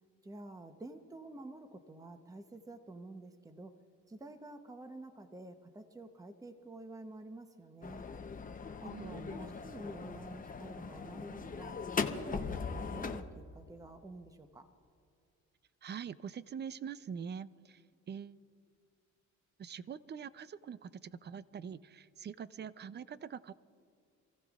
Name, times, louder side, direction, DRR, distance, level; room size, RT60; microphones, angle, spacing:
voice 1, 0.2-3.7 4.1-8.1 8.8-11.8 12.1-14.7, right 2 dB, 10° right, 7 dB, 0.9 m, -49 dB
sound 1, 7.8-13.2, left 5 dB, 25° left, 0.8 m, -39 dB
voice 2, 8.8-9.5 15.8-17.8 18.1-18.4 19.6-23.5, right 7 dB, 35° right, 17 dB, 0.5 m, -44 dB
27.5 x 15.0 x 2.4 m, 2.4 s
cardioid pair, 90°, 30 cm